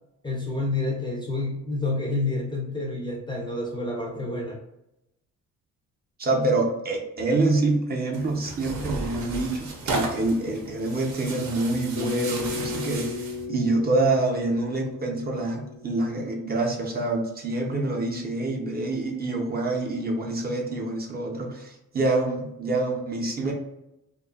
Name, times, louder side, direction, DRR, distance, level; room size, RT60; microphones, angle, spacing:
voice 1, 0.2-4.6, left 2 dB, 15° left, -1 dB, 0.4 m, -29 dB
voice 2, 6.2-23.5, right 2 dB, 30° right, 0 dB, 0.6 m, -26 dB
Tearing, 8.1-13.5, right 2 dB, 70° right, 0.7 m, -34 dB
Bass guitar, 12.0-16.3, left 5 dB, 70° left, 0.5 m, -35 dB
2.5 x 2.3 x 2.3 m, 0.88 s
cardioid pair, 90°, 30 cm